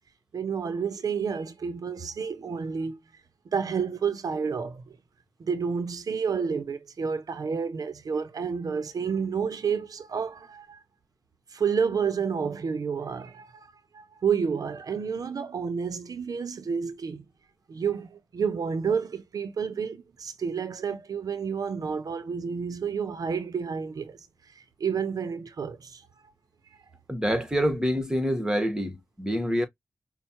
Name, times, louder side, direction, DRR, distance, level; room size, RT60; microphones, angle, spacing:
voice 1, 0.3-3.0 3.5-5.0 5.4-10.8 11.5-17.2 17.7-24.3 24.5-26.1, right 6 dB, 80° right, 0.6 m, -30 dB
voice 2, 27.1-29.7, equal, 10° right, 1.3 m, -26 dB
5.4 x 2.1 x 2.9 m
cardioid pair, 45°, 6 cm